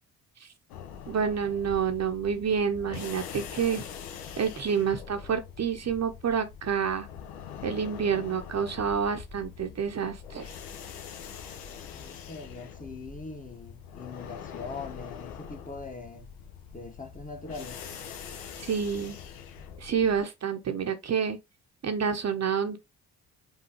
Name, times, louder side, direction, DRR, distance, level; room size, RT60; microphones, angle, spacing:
sound 1, 0.7-20.2, left 7 dB, 75° left, 0.9 m, -43 dB
voice 1, 1.1-3.8 4.4-7.1 7.6-10.5 18.6-19.2 19.8-21.4 21.8-22.8, right 7 dB, 35° right, 0.8 m, -28 dB
voice 2, 11.9-16.3 16.7-17.8, left 3 dB, 20° left, 1.0 m, -42 dB
5.4 x 2.7 x 2.9 m
hypercardioid pair, 45°, 44 cm